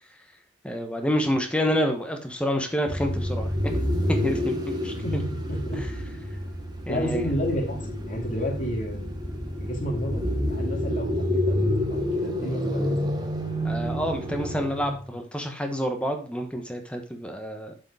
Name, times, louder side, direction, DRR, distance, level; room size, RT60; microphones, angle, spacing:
voice 1, 0.6-3.8 4.1-4.9 5.8-5.9 6.9-7.3 13.6-17.7, equal, 5° left, 4 dB, 1.0 m, -28 dB
sound 1, 2.9-15.0, left 1 dB, 20° right, 1.1 m, -28 dB
voice 2, 5.0-5.8 6.9-9.1 9.6-13.1, equal, 40° left, -1 dB, 2.7 m, -31 dB
7.4 x 4.9 x 4.9 m, 0.38 s
head